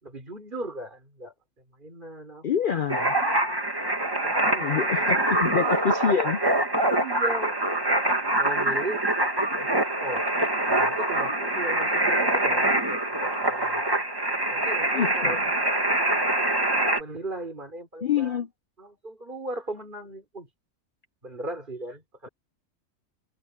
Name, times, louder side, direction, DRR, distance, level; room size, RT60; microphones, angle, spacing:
voice 1, 0.0-1.3 1.8-2.9 4.2-5.1 6.9-7.7 8.4-9.0 9.5-10.2 10.7-14.1 14.5-15.4 17.0-18.4 18.8-20.5 21.2-22.3, right 2 dB, 40° right, 4.0 m, -37 dB
voice 2, 2.4-3.1 4.6-6.4 14.9-15.4 18.0-18.5, left 7 dB, 50° left, 0.6 m, -26 dB
sound 1, 2.9-17.0, right 1 dB, 20° right, 1.9 m, -24 dB
omnidirectional pair, 1.4 m